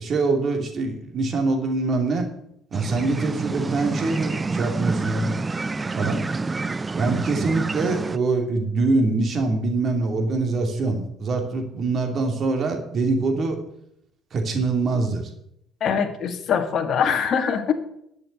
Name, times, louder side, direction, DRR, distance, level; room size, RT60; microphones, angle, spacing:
voice 1, 0.0-2.3 2.7-5.3 5.9-6.2 6.9-13.6 14.3-15.3, right 3 dB, 45° right, 3 dB, 2.7 m, -24 dB
sound 1, 2.7-8.2, right 3 dB, 25° right, 0.5 m, -28 dB
voice 2, 15.8-17.7, left 7 dB, 50° left, 6 dB, 1.6 m, -23 dB
10.5 x 6.6 x 8.0 m, 0.76 s
figure-of-eight pair, 50°, 0 cm